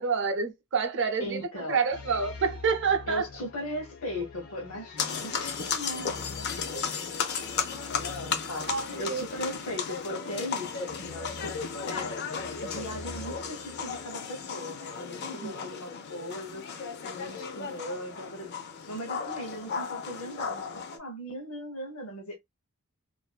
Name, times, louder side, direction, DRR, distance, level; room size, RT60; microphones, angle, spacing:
voice 1, 0.0-1.4 1.7-3.3 6.7-6.8 8.7-9.2 15.2-15.5, right 5 dB, 55° right, 0.5 m, -28 dB
voice 2, 1.2-1.8 3.1-7.6 8.2-8.7 9.0-11.5 11.9-12.2 12.6-16.7 17.0-18.5 18.9-22.4, equal, 65° left, 0.8 m, -38 dB
sound 1, 1.9-14.4, left 4 dB, 85° left, 1.1 m, -47 dB
sound 2, 5.0-21.0, left 6 dB, 50° left, 0.4 m, -35 dB
2.5 x 2.2 x 2.4 m
head